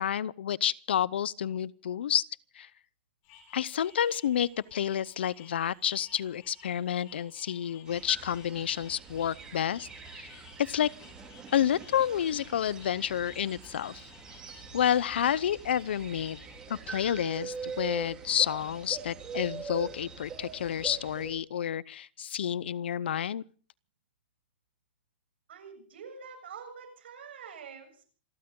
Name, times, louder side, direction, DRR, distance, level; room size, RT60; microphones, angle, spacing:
voice 1, 0.0-2.3 2.5-2.7 3.5-9.9 10.1-10.9 11.5-14.1 14.7-16.4 16.7-23.4, left 9 dB, 80° left, 0.7 m, -30 dB
sound 1, 3.2-16.6, left 8 dB, 30° left, 4.7 m, -57 dB
sound 2, 7.9-21.3, right 6 dB, 10° right, 3.0 m, -43 dB
voice 2, 25.5-28.0, right 6 dB, 80° right, 7.2 m, -46 dB
27.5 x 13.5 x 3.8 m
supercardioid pair, 180°, 6 cm